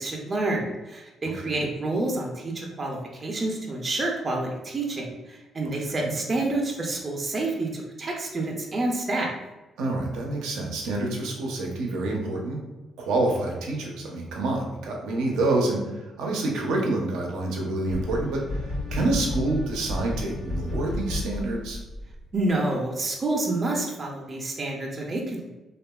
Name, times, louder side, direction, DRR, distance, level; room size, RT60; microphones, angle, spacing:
voice 1, 0.0-9.3 22.3-25.5, right 2 dB, 40° right, -1 dB, 0.5 m, -28 dB
voice 2, 1.2-1.7 5.6-6.2 9.8-12.6 13.0-18.4 18.9-21.8, right 2 dB, 80° right, -1 dB, 0.6 m, -27 dB
sound 1, 17.9-22.4, left 2 dB, 65° left, 1.0 m, -32 dB
2.8 x 2.4 x 2.3 m, 1.1 s
supercardioid pair, 55°, 0 cm